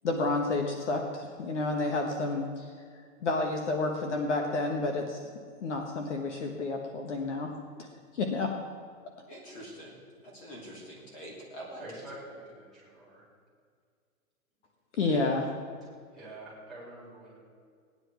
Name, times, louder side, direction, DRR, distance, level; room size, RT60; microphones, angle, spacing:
voice 1, 0.0-2.7 3.2-5.2 5.6-7.5 7.8-7.9 8.1-8.5 15.0-15.5, left 3 dB, 55° left, 3 dB, 1.4 m, -30 dB
voice 2, 9.3-11.8, equal, 25° left, -3 dB, 2.7 m, -45 dB
voice 3, 11.8-13.2 16.1-17.4, right 2 dB, ahead, -8 dB, 3.6 m, -46 dB
17.5 x 9.9 x 4.6 m, 2.1 s
hypercardioid pair, 175°, 43 cm